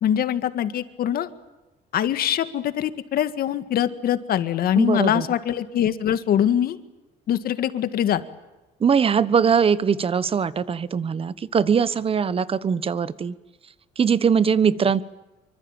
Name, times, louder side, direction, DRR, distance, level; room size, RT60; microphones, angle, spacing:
voice 1, 0.0-1.3 1.9-6.8 7.3-8.2, left 10 dB, 60° left, 11 dB, 1.9 m, -23 dB
voice 2, 4.7-5.3 8.8-13.3 14.0-15.0, right 6 dB, 35° right, 17 dB, 1.2 m, -21 dB
25.5 x 24.5 x 9.0 m, 1.1 s
cardioid pair, 110°, 17 cm